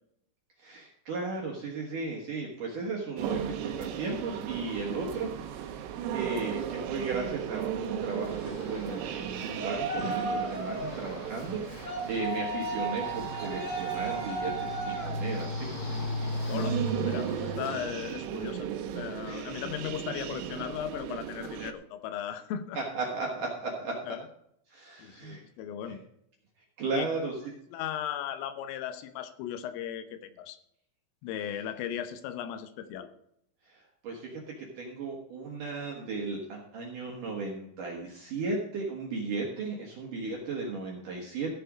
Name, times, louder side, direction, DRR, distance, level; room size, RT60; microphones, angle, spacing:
voice 1, 0.6-5.8 6.1-16.0 19.3-19.5 22.7-24.0 24.7-25.4 26.8-27.3 33.6-41.6, right 3 dB, 60° right, -1 dB, 2.2 m, -35 dB
sound 1, 3.2-21.7, right 9 dB, 75° right, 2.7 m, -36 dB
Yell, 8.0-18.2, equal, 35° left, 1.6 m, -35 dB
voice 2, 16.5-18.7 18.9-22.8 24.1-24.3 25.0-26.0 26.9-27.2 27.7-30.6 31.2-33.1, left 10 dB, 80° left, 10 dB, 3.4 m, -37 dB
14.5 x 6.8 x 5.1 m, 0.73 s
omnidirectional pair, 6.0 m